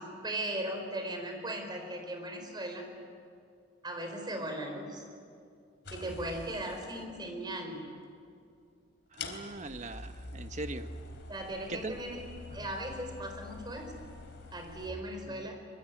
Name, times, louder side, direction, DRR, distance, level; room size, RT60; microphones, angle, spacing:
voice 1, 0.0-2.9 3.8-5.0 5.9-7.9 11.3-12.2 12.5-14.1 14.5-15.6, right 1 dB, 25° right, 4 dB, 4.6 m, -38 dB
sound 1, 5.8-6.9 8.2-8.3 9.1-14.9, left 3 dB, 65° left, 3.9 m, -45 dB
voice 2, 9.1-10.9 11.7-12.0 12.5-12.7 15.3-15.5, right 2 dB, 40° right, 8 dB, 1.2 m, -41 dB
25.0 x 23.0 x 9.2 m, 2.3 s
head